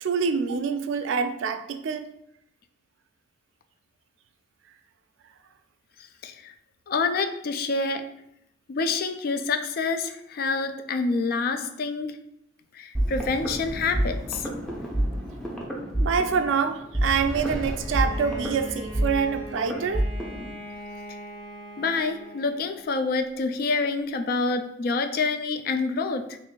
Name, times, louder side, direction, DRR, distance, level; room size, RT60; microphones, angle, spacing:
voice 1, 0.0-2.1 16.0-20.1, right 6 dB, 85° right, 8 dB, 0.3 m, -26 dB
voice 2, 6.2-6.5 6.9-8.0 8.7-12.2 12.7-14.5 21.1-21.2 21.8-26.4, left 4 dB, 50° left, 8 dB, 0.3 m, -27 dB
sound 1, 12.9-20.5, right 1 dB, 5° left, 0.5 m, -29 dB
Bowed string instrument, 17.7-22.9, equal, 20° left, 1.3 m, -41 dB
3.1 x 2.5 x 3.6 m, 0.78 s
head